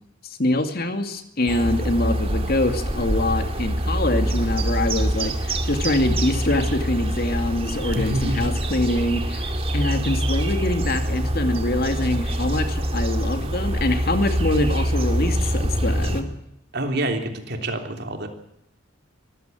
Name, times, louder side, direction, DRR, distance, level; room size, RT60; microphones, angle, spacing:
voice 1, 0.4-16.3, left 1 dB, 50° left, 7 dB, 2.4 m, -24 dB
sound 1, 1.5-16.2, equal, 30° right, 2.4 m, -25 dB
voice 2, 7.9-8.5 16.7-18.3, right 1 dB, 55° right, 5 dB, 3.4 m, -27 dB
24.0 x 15.0 x 9.2 m, 0.80 s
head